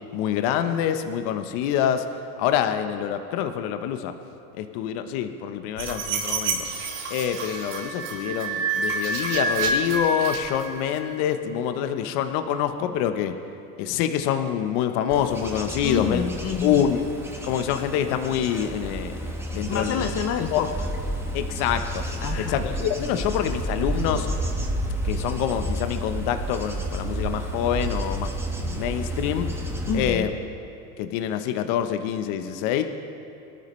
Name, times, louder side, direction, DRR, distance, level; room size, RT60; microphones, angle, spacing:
voice 1, 0.1-2.1 2.4-4.1 4.5-6.7 7.1-13.3 13.8-16.3 16.6-17.0 17.4-20.1 20.5-20.6 21.3-22.0 22.4-24.3 25.0-29.5 29.9-30.3 31.0-32.8, left 9 dB, 55° left, 8 dB, 1.0 m, -26 dB
sound 1, 5.8-10.9, right 3 dB, 85° right, 3.9 m, -28 dB
Bird / Insect / Wind, 15.1-30.1, right 1 dB, 5° right, 1.2 m, -31 dB
voice 2, 15.8-16.8 19.7-20.7 22.2-22.6 24.1-24.3 29.9-30.3, left 7 dB, 35° left, 7 dB, 0.8 m, -28 dB
24.5 x 13.0 x 3.2 m, 2.6 s
supercardioid pair, 130°, 47 cm